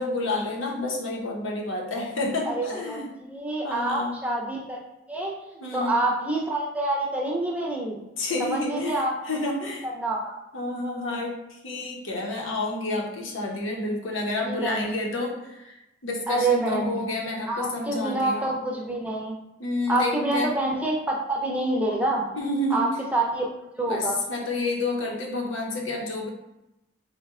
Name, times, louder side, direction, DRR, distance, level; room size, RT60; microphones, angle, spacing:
voice 1, 0.0-3.1 3.6-4.1 5.6-6.0 8.2-9.8 10.5-18.5 19.6-20.5 22.3-22.9 23.9-26.3, left 2 dB, 80° left, 0 dB, 0.8 m, -29 dB
voice 2, 2.5-3.0 3.3-4.8 5.1-8.0 8.4-9.1 9.8-10.3 14.4-14.8 16.3-17.0 17.5-19.4 19.9-22.2 22.7-23.5 23.8-24.2, right 2 dB, 5° right, -2 dB, 0.5 m, -27 dB
4.0 x 2.2 x 3.6 m, 0.92 s
head